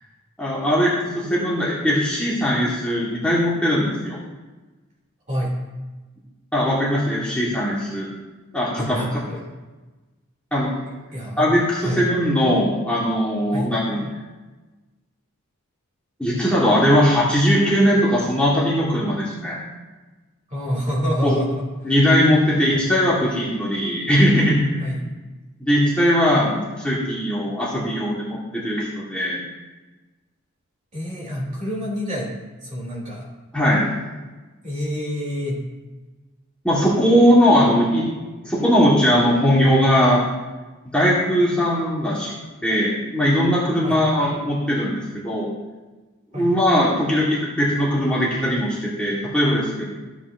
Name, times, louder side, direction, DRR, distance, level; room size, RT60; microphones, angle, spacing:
voice 1, 0.4-4.2 6.5-8.1 8.5-9.0 10.5-10.7 11.4-14.0 16.2-19.6 21.2-21.4 21.8-24.8 25.6-29.4 33.5-33.9 36.6-38.1 38.4-40.2 40.9-42.3 42.6-45.5 46.3-49.9, equal, 5° left, -8 dB, 1.5 m, -19 dB
voice 2, 8.8-9.4 11.1-12.0 13.5-13.7 20.5-21.6 22.7-22.8 24.8-25.0 30.9-32.3 32.6-33.3 34.6-35.6 43.8-44.0 46.3-46.5, equal, 35° right, -4 dB, 2.8 m, -27 dB
14.0 x 7.5 x 2.6 m, 1.2 s
head